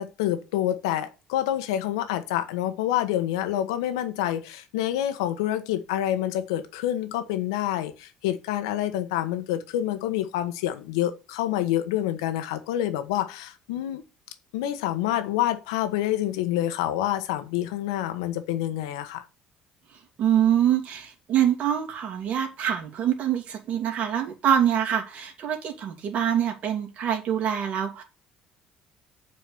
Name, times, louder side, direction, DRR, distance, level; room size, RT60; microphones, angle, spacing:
voice 1, 0.0-14.0 14.5-19.2, left 12 dB, 90° left, 1.3 m, -27 dB
voice 2, 20.2-28.0, right 9 dB, 60° right, 2.6 m, -25 dB
7.9 x 4.7 x 7.2 m
supercardioid pair, 70°, 3 cm